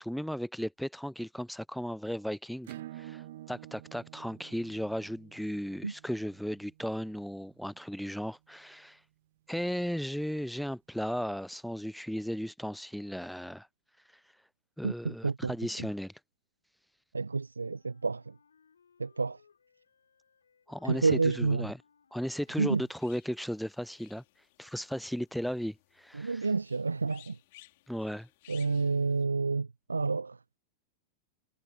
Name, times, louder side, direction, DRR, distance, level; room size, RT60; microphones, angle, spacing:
voice 1, 0.0-9.0 9.5-13.7 14.8-16.1 20.7-21.8 22.1-24.2 24.6-26.5 27.9-28.3, equal, ahead, 0.7 m, -36 dB
Acoustic guitar / Strum, 2.6-7.9, right 14 dB, 55° right, 2.3 m, -49 dB
voice 2, 14.8-15.5 15.8-15.9 17.1-18.3 19.0-19.4 20.8-21.7 22.6-22.8 26.1-27.4 28.5-30.4, right 4 dB, 80° right, 0.4 m, -29 dB
Wind instrument woodwind instrument, 17.7-23.4, left 6 dB, 70° left, 5.0 m, -66 dB
sound 1, 22.4-29.2, left 20 dB, 50° left, 4.3 m, -60 dB
figure-of-eight pair, 90°, 0 cm